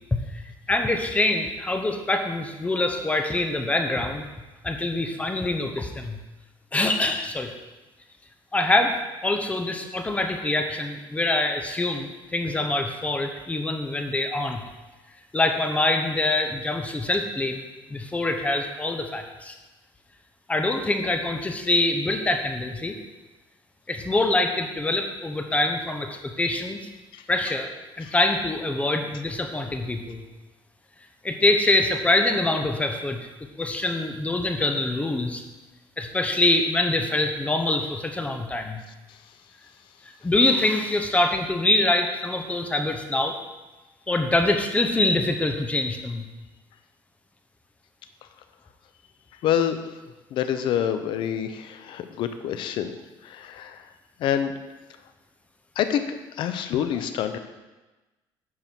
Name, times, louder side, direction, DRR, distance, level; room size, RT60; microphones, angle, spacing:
voice 1, 0.1-0.4 0.7-4.3 4.6-6.2 6.7-7.5 8.5-9.0 9.2-14.6 15.3-17.6 17.9-19.5 20.5-23.0 23.9-26.8 27.3-27.7 28.0-30.2 31.2-33.2 33.6-35.4 36.0-38.8 40.2-43.4 44.1-46.2, left 2 dB, 15° left, 5 dB, 0.9 m, -24 dB
voice 2, 49.4-49.8 50.3-52.9 53.2-53.9 54.2-54.5 55.8-57.4, left 9 dB, 65° left, 9 dB, 0.8 m, -27 dB
9.7 x 6.8 x 4.6 m, 1.1 s
cardioid pair, 125°, 9 cm